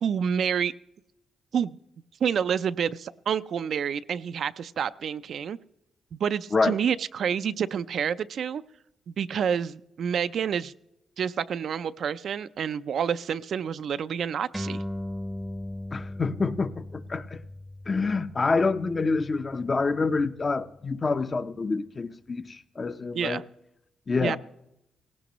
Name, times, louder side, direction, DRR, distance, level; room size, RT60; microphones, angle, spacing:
voice 1, 0.0-0.7 1.5-1.8 2.2-5.6 6.1-8.6 9.1-10.7 11.2-14.8 23.1-23.4 24.2-24.4, right 7 dB, 65° right, 0.4 m, -28 dB
sound 1, 14.5-21.4, left 1 dB, 5° right, 0.7 m, -39 dB
voice 2, 15.9-17.4 17.9-23.4 24.1-24.4, left 4 dB, 35° left, 0.7 m, -27 dB
18.0 x 17.0 x 3.0 m
cardioid pair, 100°, 0 cm